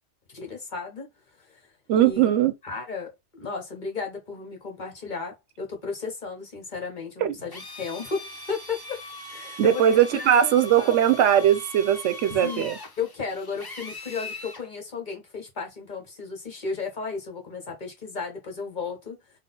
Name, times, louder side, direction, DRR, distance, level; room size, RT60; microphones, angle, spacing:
voice 1, 0.3-1.1 1.5-1.6 1.9-2.3 2.6-8.2 8.5-9.0 9.3-9.8 10.1-10.9 12.3-19.2, left 5 dB, 40° left, 0.9 m, -34 dB
voice 2, 1.9-2.5 7.2-7.3 9.6-12.8, right 10 dB, 75° right, 0.9 m, -20 dB
Drill, 7.5-14.7, left 2 dB, 25° left, 0.6 m, -40 dB
3.7 x 2.3 x 3.8 m
omnidirectional pair, 1.3 m